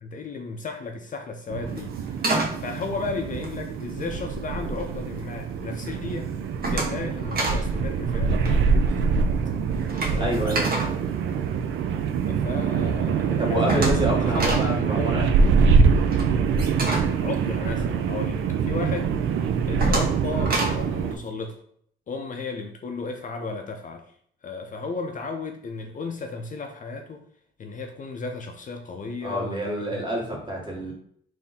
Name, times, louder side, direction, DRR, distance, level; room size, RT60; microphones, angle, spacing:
voice 1, 0.0-2.0 2.6-6.3 6.6-9.3 10.1-10.4 12.2-15.5 16.7-19.1 19.7-21.6 22.1-24.1 24.4-27.2 27.6-30.0, left 4 dB, 40° left, 4 dB, 0.5 m, -34 dB
sound 1, 1.5-21.1, right 5 dB, 75° right, 0.4 m, -24 dB
sound 2, 1.7-4.2 4.6-5.2 5.6-5.9 6.2-7.7 7.9-8.1 8.4-12.1 12.5-12.6 12.9-13.0 13.2-18.2 18.7-18.8 19.3-20.9, right 2 dB, 50° right, 1.3 m, -30 dB
voice 2, 10.2-10.9 13.4-15.5 29.2-30.9, equal, 25° right, -3 dB, 1.7 m, -28 dB
3.6 x 2.7 x 4.1 m, 0.64 s
cardioid pair, 90°, 20 cm